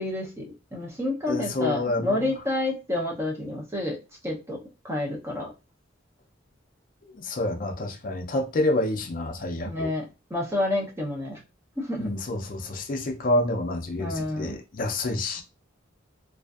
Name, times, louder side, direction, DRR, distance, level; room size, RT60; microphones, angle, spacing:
voice 1, 0.0-4.0 4.2-5.5 9.6-11.4 11.8-12.1 14.0-14.6, left 2 dB, 15° right, 0.6 m, -29 dB
voice 2, 1.3-2.2 7.0-9.9 12.0-15.4, left 2 dB, 45° left, 0.4 m, -28 dB
2.4 x 2.4 x 2.3 m
head